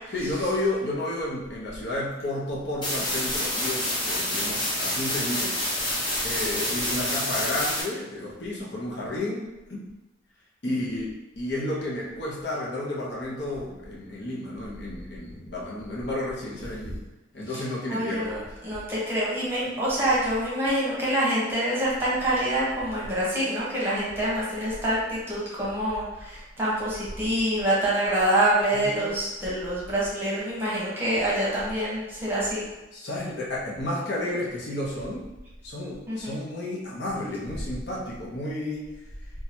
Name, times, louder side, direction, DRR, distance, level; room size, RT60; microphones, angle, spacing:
voice 1, 0.1-5.5 6.2-9.8 10.6-17.0 17.3-18.5 19.6-19.7 28.7-29.2 32.9-35.2 35.6-38.9, left 1 dB, 60° left, -5 dB, 0.8 m, -32 dB
sound 1, 2.8-7.8, left 1 dB, 25° left, 0.8 m, -28 dB
voice 2, 17.9-32.6 36.1-36.4, right 1 dB, 10° right, -8 dB, 1.0 m, -26 dB
2.9 x 2.4 x 4.3 m, 1.0 s
head